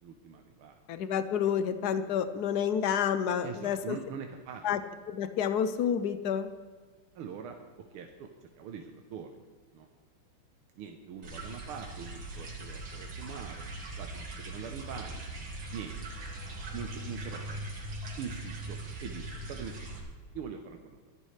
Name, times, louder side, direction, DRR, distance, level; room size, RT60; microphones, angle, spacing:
voice 1, 0.0-0.8 3.4-4.6 7.2-7.6 7.9-9.4 9.7-9.9 10.8-13.6 14.0-15.2 15.7-15.9 16.7-17.6 18.2-19.9 20.3-21.0, right 7 dB, 80° right, 3 dB, 1.8 m, -43 dB
voice 2, 0.9-4.0 4.6-4.8 5.1-6.5, left 8 dB, 75° left, 11 dB, 0.9 m, -29 dB
sound 1, 11.2-20.0, right 2 dB, 60° right, 2.6 m, -40 dB
24.0 x 11.0 x 3.2 m, 1.4 s
omnidirectional pair, 2.4 m